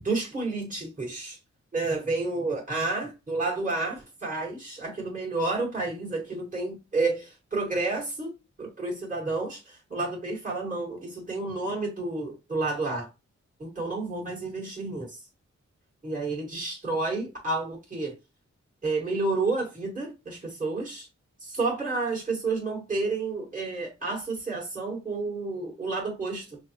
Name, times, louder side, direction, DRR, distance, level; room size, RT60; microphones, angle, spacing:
voice 1, 0.0-1.4 1.7-8.3 8.6-13.1 13.6-15.2 16.0-18.1 18.8-21.1 21.4-26.6, right 3 dB, 25° right, 1.9 m, -30 dB
5.9 x 2.0 x 2.9 m
wide cardioid pair, 90°, 29 cm